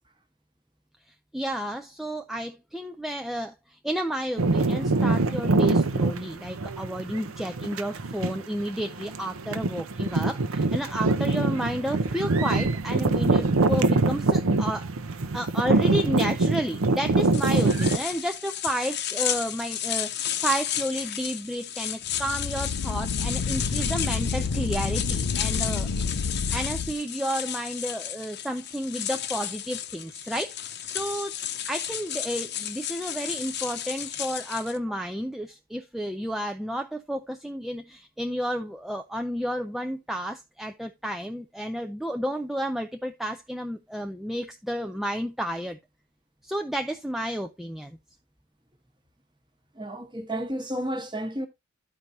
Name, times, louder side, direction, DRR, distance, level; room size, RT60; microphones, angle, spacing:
voice 1, 1.1-14.9 15.3-26.2 26.5-31.4 31.7-45.8 46.4-48.0, equal, ahead, 0.3 m, -31 dB
sound 1, 4.4-18.0, right 3 dB, 75° right, 0.7 m, -24 dB
sound 2, 17.3-34.8, left 10 dB, 50° left, 0.8 m, -33 dB
sound 3, 22.1-26.9, left 4 dB, 85° left, 0.6 m, -29 dB
voice 2, 49.7-51.5, right 1 dB, 20° right, 1.0 m, -32 dB
13.0 x 4.7 x 2.6 m
head